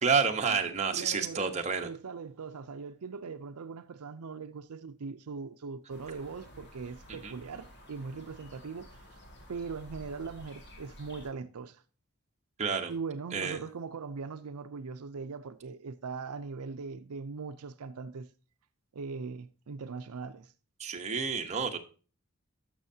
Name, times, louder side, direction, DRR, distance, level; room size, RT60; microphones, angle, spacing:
voice 1, 0.0-1.9 7.2-7.3 12.6-12.9 13.3-13.6 20.8-21.8, right 5 dB, 30° right, 1.0 m, -29 dB
voice 2, 0.9-1.5 1.8-9.2 9.5-11.8 12.9-18.3 18.9-20.5, right 5 dB, 85° right, 0.5 m, -40 dB
sound 1, 5.9-11.3, equal, 50° left, 2.0 m, -52 dB
12.0 x 6.3 x 2.7 m
head